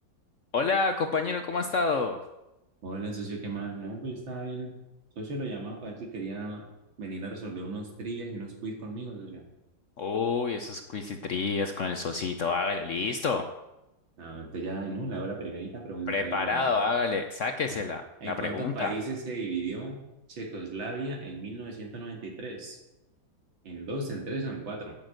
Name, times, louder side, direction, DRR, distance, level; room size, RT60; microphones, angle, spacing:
voice 1, 0.5-2.2 10.0-13.5 16.1-18.9, left 4 dB, 60° left, 7 dB, 0.8 m, -28 dB
voice 2, 2.8-4.7 5.2-6.6 7.0-9.4 14.2-16.7 17.7-17.8 18.2-20.0 20.3-22.8 23.6-25.0, right 3 dB, 80° right, 1 dB, 3.1 m, -36 dB
9.1 x 8.8 x 7.7 m, 0.95 s
omnidirectional pair, 2.1 m